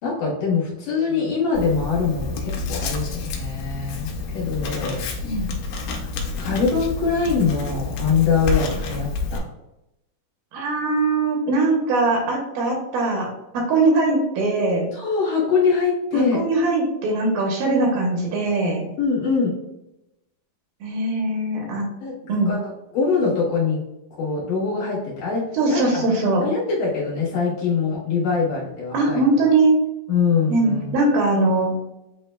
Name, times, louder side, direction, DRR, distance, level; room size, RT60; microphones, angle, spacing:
voice 1, 0.0-5.1 5.4-5.5 6.0-6.1 6.4-9.4 14.9-16.4 19.0-19.5 22.0-22.1 22.5-23.8 24.2-26.0 26.4-29.2 30.1-30.9, left 5 dB, 65° left, -6 dB, 2.7 m, -23 dB
Writing, 1.5-9.4, left 3 dB, 90° left, 2.7 m, -29 dB
voice 2, 10.5-13.3 13.5-14.9 16.1-18.9 20.8-21.9 22.3-22.5 25.5-26.4 28.9-29.8 30.5-31.7, right 2 dB, 75° right, 0 dB, 2.5 m, -21 dB
8.2 x 2.9 x 2.2 m, 0.89 s
omnidirectional pair, 4.3 m